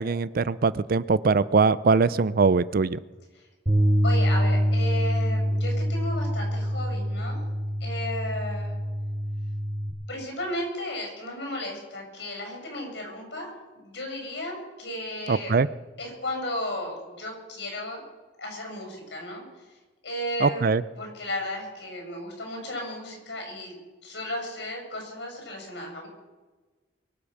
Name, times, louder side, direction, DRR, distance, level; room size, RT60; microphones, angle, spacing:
voice 1, 0.0-3.0 15.3-15.7 20.4-20.8, right 4 dB, 50° right, 18 dB, 0.5 m, -22 dB
Bass guitar, 3.7-9.9, equal, 30° right, 3.9 m, -25 dB
voice 2, 4.0-7.4 7.8-8.7 10.1-15.5 16.0-18.0 18.4-19.4 20.0-20.6 21.0-23.7 24.0-26.1, left 1 dB, 70° left, 1 dB, 7.3 m, -34 dB
23.5 x 8.7 x 6.6 m, 1.3 s
head